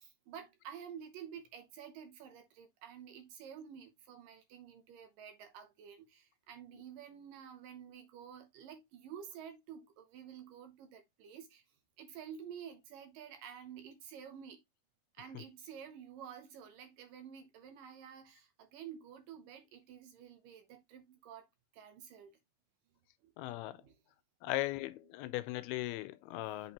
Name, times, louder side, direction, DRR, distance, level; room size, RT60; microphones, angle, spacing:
voice 1, 0.0-11.6 12.0-14.6 15.2-21.5 21.7-22.4 23.2-23.3 23.7-24.0 26.5-26.6, right 8 dB, 70° right, 2.4 m, -50 dB
voice 2, 23.4-23.8 24.4-26.7, left 17 dB, 90° left, 2.5 m, -38 dB
8.4 x 4.3 x 2.9 m
omnidirectional pair, 4.3 m